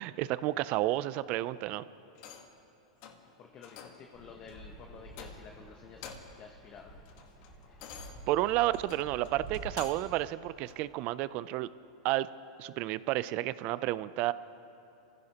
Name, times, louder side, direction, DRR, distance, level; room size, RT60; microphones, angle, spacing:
voice 1, 0.0-1.8 8.3-11.7 12.0-12.3 12.6-14.3, right 16 dB, 40° right, 17 dB, 0.4 m, -31 dB
sound 1, 2.1-2.6 3.0-3.3 3.6-4.1 4.5-4.7 5.1-5.6 5.9-6.4 6.8-10.2 10.7-10.8, left 8 dB, 45° left, 1.3 m, -49 dB
voice 2, 3.2-7.0, left 6 dB, 30° left, 3 dB, 0.9 m, -51 dB
Fixed-wing aircraft airplane, 4.1-9.6, right 2 dB, 15° left, 3.6 m, -50 dB
28.5 x 15.0 x 2.9 m, 2.8 s
hypercardioid pair, 140°, 3 cm